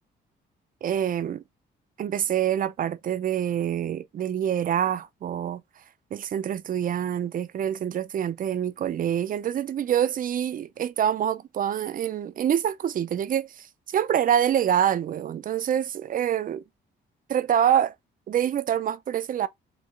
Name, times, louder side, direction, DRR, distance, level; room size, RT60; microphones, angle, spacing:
voice 1, 0.8-1.4 2.0-5.6 6.1-16.6 17.3-17.9 18.3-19.5, right 9 dB, 45° right, 0.4 m, -26 dB
4.5 x 2.8 x 2.4 m
cardioid pair, 90°, 20 cm